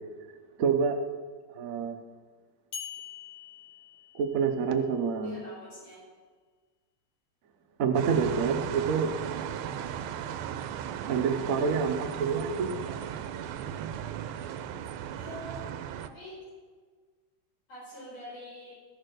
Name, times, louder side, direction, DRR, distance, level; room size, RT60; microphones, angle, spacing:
voice 1, 0.6-1.0 1.6-2.0 4.1-5.4 7.8-9.1 11.1-12.7, right 6 dB, 60° right, 4 dB, 0.9 m, -27 dB
sound 1, 2.7-4.8, left 8 dB, 55° left, 1.7 m, -44 dB
voice 2, 5.2-6.0 12.8-13.0 15.1-15.6 16.0-16.5 17.7-18.7, equal, 70° left, -7 dB, 5.6 m, -45 dB
sound 2, 7.9-16.1, right 9 dB, 85° right, 1.5 m, -36 dB
14.0 x 6.7 x 6.4 m, 1.5 s
omnidirectional pair, 2.3 m